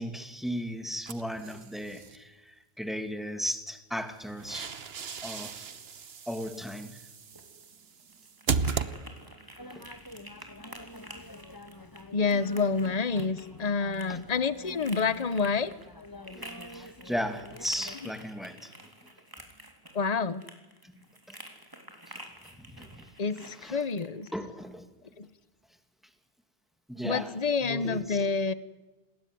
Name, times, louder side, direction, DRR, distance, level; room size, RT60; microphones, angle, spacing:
voice 1, 0.0-4.7 5.2-5.6 6.3-7.0 9.7-9.8 14.1-14.2 16.4-18.7 22.6-23.0 23.6-23.8 24.3-24.9 26.9-27.3 27.6-28.2, equal, ahead, 2.4 m, -36 dB
sound 1, 1.1-2.2 4.1-9.5, right 5 dB, 75° right, 1.3 m, -36 dB
sound 2, 7.2-24.3, right 1 dB, 20° right, 3.5 m, -50 dB
sound 3, 9.6-18.0, left 1 dB, 20° left, 1.5 m, -47 dB
voice 2, 12.1-15.7 18.0-18.1 19.9-20.4 23.2-24.3 25.2-25.3 27.0-28.5, left 4 dB, 40° left, 1.1 m, -28 dB
28.0 x 20.5 x 9.5 m
omnidirectional pair, 1.0 m